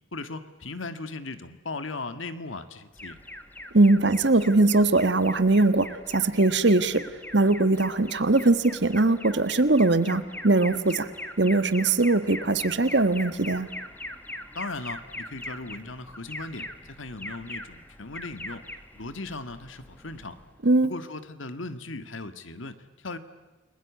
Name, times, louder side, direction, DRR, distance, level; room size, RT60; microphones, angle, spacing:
voice 1, 0.1-3.2 14.5-18.7 18.9-20.4 20.8-23.2, left 3 dB, 85° left, 11 dB, 1.9 m, -37 dB
Alarm, 3.0-20.6, left 1 dB, 10° left, 1.6 m, -41 dB
voice 2, 3.7-7.0 7.3-11.1 11.4-13.7 20.6-20.9, right 2 dB, 60° right, 12 dB, 1.5 m, -21 dB
29.5 x 21.5 x 8.4 m, 1.2 s
head